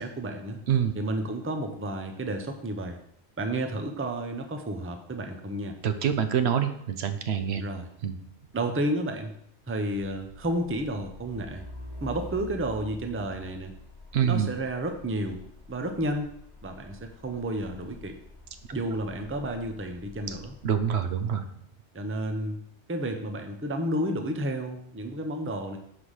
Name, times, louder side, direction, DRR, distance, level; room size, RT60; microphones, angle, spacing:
voice 1, 0.0-0.6 0.9-3.0 3.4-5.8 7.6-7.9 8.5-9.3 9.7-11.6 12.0-13.7 14.2-15.4 15.7-16.3 16.6-18.2 18.7-20.5 21.9-22.6 22.9-25.8, right 1 dB, 15° right, 5 dB, 0.6 m, -31 dB
voice 2, 5.8-7.6 8.0-8.1 14.1-14.5 20.3-20.4 20.6-21.4, right 8 dB, 70° right, 9 dB, 0.9 m, -26 dB
Truck, 10.0-21.2, left 2 dB, 20° left, 1.3 m, -47 dB
5.7 x 5.1 x 6.4 m, 0.70 s
omnidirectional pair, 1.1 m